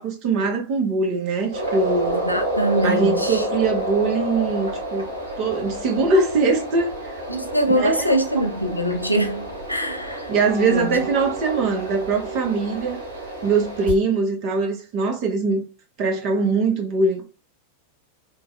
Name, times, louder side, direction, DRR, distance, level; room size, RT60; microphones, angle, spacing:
voice 1, 0.0-2.3 2.8-5.1 5.4-7.2 7.8-8.2 10.3-13.0 13.4-15.6 16.0-17.2, right 3 dB, 40° right, 0.7 m, -22 dB
sound 1, 1.5-13.9, right 1 dB, 70° right, 1.0 m, -29 dB
voice 2, 2.3-3.5 7.3-10.3 10.7-11.0, equal, 90° left, 0.4 m, -23 dB
3.1 x 2.1 x 2.2 m
figure-of-eight pair, 90°, 0 cm